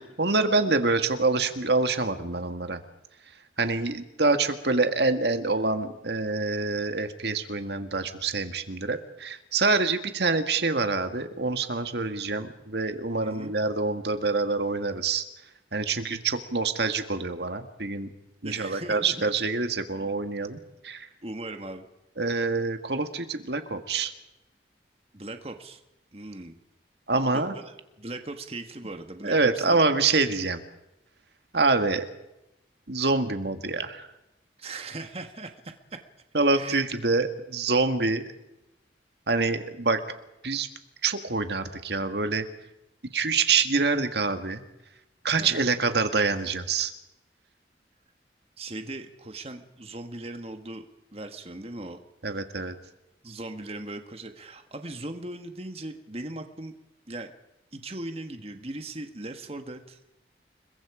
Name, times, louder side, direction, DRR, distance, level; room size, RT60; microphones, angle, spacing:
voice 1, 0.0-2.8 3.6-15.2 15.7-18.1 18.4-21.1 22.2-24.1 27.1-27.5 29.2-30.6 31.5-32.1 32.9-34.1 36.3-38.2 39.3-40.0 40.4-40.7 41.0-42.5 43.1-44.6 45.2-46.9 52.2-52.8, right 3 dB, 65° right, 8 dB, 1.9 m, -26 dB
voice 2, 13.2-13.5 18.4-19.2 21.2-21.9 25.1-25.8 26.1-26.6 27.3-29.8 34.6-36.0 36.5-36.8 45.4-45.7 48.6-50.8 51.1-52.0 53.2-56.7 57.1-57.3 57.7-60.0, right 2 dB, 35° right, 6 dB, 1.6 m, -39 dB
29.5 x 23.0 x 5.0 m, 0.91 s
head